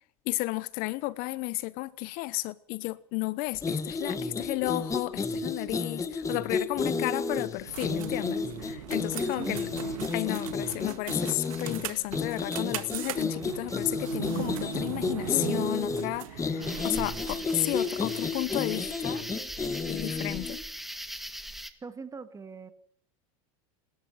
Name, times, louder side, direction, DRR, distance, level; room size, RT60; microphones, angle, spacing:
voice 1, 0.2-9.7 10.1-19.2 19.9-20.6, left 20 dB, 55° left, 0.9 m, -33 dB
sound 1, 3.5-20.6, left 4 dB, 20° left, 2.0 m, -32 dB
sound 2, 7.7-18.5, right 12 dB, 80° right, 1.9 m, -39 dB
voice 2, 9.2-9.6 21.8-22.7, right 4 dB, 20° right, 2.1 m, -41 dB
sound 3, 16.6-21.7, equal, ahead, 1.8 m, -39 dB
27.5 x 13.0 x 7.7 m
supercardioid pair, 110°, 17 cm